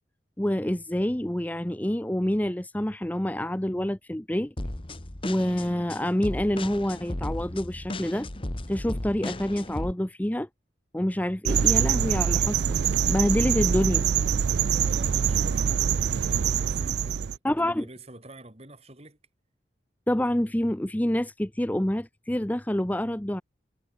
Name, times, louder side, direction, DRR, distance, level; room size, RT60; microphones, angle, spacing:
voice 1, 0.4-4.5 5.2-8.3 8.7-10.5 10.9-12.8 13.1-14.0 17.4-17.9 20.1-23.4, left 1 dB, 10° left, 0.7 m, -27 dB
sound 1, 4.6-9.9, left 1 dB, 30° left, 1.4 m, -35 dB
sound 2, 11.5-17.4, right 7 dB, 65° right, 0.4 m, -24 dB
voice 2, 14.6-19.2, right 1 dB, 35° right, 4.0 m, -47 dB
head